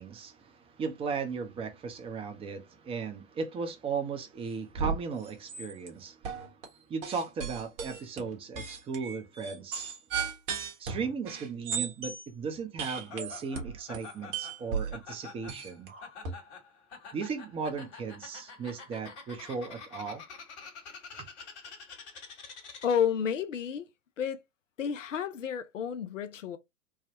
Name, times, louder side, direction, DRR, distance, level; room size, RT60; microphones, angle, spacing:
voice 1, 0.0-6.5 6.9-9.9 10.8-15.9 17.1-20.2 21.2-21.3, right 5 dB, 15° right, 0.6 m, -36 dB
sound 1, 4.7-5.0 5.2-5.9 6.2-6.7 7.0-12.3 12.8-16.3, right 6 dB, 35° right, 1.2 m, -35 dB
Laughter, 12.9-23.2, left 5 dB, 60° left, 1.5 m, -48 dB
voice 2, 22.8-23.9 24.2-24.4 24.8-26.6, left 8 dB, 75° left, 0.6 m, -30 dB
3.4 x 2.1 x 2.8 m
figure-of-eight pair, 100°, 37 cm